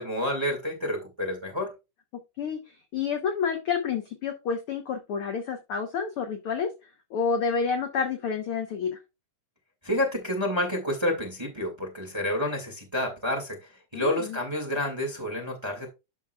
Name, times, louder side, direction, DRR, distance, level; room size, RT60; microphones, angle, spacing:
voice 1, 0.0-1.7 9.8-15.9, left 1 dB, 10° right, 1.4 m, -29 dB
voice 2, 2.4-6.7 7.1-9.0 13.9-14.4, left 6 dB, 70° left, 1.3 m, -29 dB
11.0 x 6.2 x 2.3 m
omnidirectional pair, 3.7 m